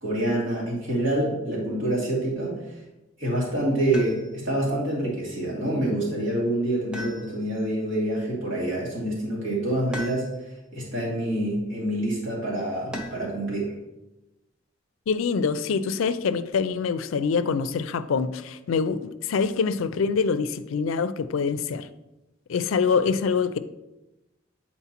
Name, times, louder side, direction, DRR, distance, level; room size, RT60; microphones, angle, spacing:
voice 1, 0.0-2.5 3.2-10.3 10.7-13.7, right 1 dB, 80° right, -5 dB, 2.2 m, -26 dB
sound 1, 3.9-4.6 6.9-7.7 9.9-10.6 12.9-13.4 15.1-15.8, equal, 5° right, 0.6 m, -38 dB
voice 2, 15.1-21.9 22.5-23.6, left 5 dB, 90° left, 13 dB, 0.4 m, -25 dB
8.1 x 4.3 x 2.9 m, 1.0 s
head